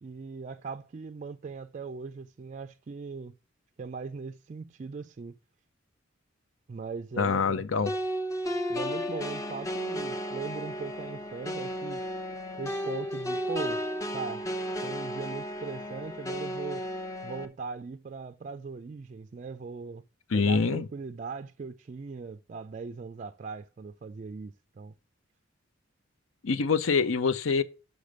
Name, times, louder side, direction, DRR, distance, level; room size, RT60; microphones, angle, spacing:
voice 1, 0.0-3.3 3.8-5.3 6.7-7.6 8.7-12.0 12.6-13.8 14.1-14.5 14.8-16.9 17.2-20.0 20.3-24.9, right 5 dB, 40° right, 0.3 m, -39 dB
voice 2, 7.2-7.9 20.3-20.9 26.4-27.6, left 5 dB, 80° left, 0.6 m, -25 dB
sound 1, 7.9-17.5, equal, 15° left, 0.8 m, -34 dB
6.2 x 5.1 x 6.3 m
head